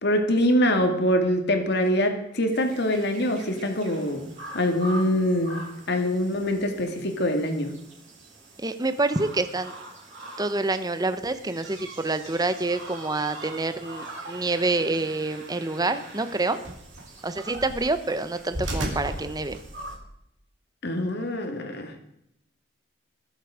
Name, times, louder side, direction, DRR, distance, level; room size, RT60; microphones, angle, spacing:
voice 1, 0.0-4.3 4.5-5.6 5.9-7.7 20.8-21.9, left 1 dB, 60° left, 5 dB, 2.1 m, -24 dB
sound 1, 2.5-20.0, right 1 dB, 40° right, 7.0 m, -44 dB
voice 2, 8.6-9.7 10.4-16.6 17.2-19.6, right 2 dB, 20° right, 11 dB, 0.9 m, -27 dB
sound 2, 11.2-20.0, right 1 dB, 75° right, 3.4 m, -39 dB
21.0 x 8.0 x 5.0 m, 0.79 s
head